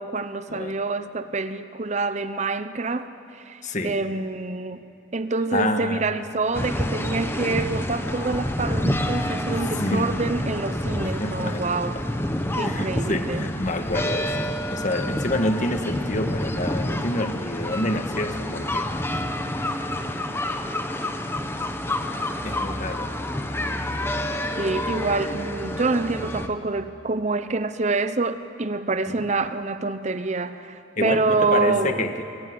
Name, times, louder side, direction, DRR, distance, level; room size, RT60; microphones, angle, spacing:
voice 1, 0.0-4.8 5.1-12.0 12.6-13.5 24.6-32.1, right 3 dB, 35° right, 12 dB, 0.7 m, -26 dB
voice 2, 3.6-4.0 5.5-6.0 9.6-10.1 11.0-11.6 12.6-18.9 22.4-23.1 29.2-29.3 31.0-32.2, left 1 dB, 40° left, 7 dB, 1.6 m, -28 dB
sound 1, 6.5-26.5, left 1 dB, 10° left, 1.2 m, -28 dB
24.0 x 23.0 x 9.6 m, 3.0 s
head